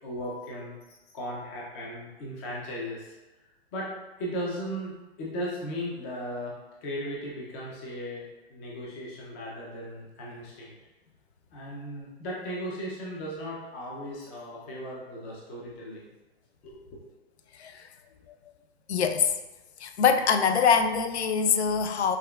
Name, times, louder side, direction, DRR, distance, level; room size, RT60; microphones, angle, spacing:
voice 1, 0.0-3.2 3.4-3.9 4.2-10.7 11.5-16.1 16.6-17.0, equal, 15° left, -4 dB, 0.3 m, -37 dB
voice 2, 18.9-19.3 19.8-22.2, left 6 dB, 90° left, 7 dB, 0.5 m, -24 dB
5.7 x 2.2 x 2.2 m, 1.1 s
hypercardioid pair, 140°, 32 cm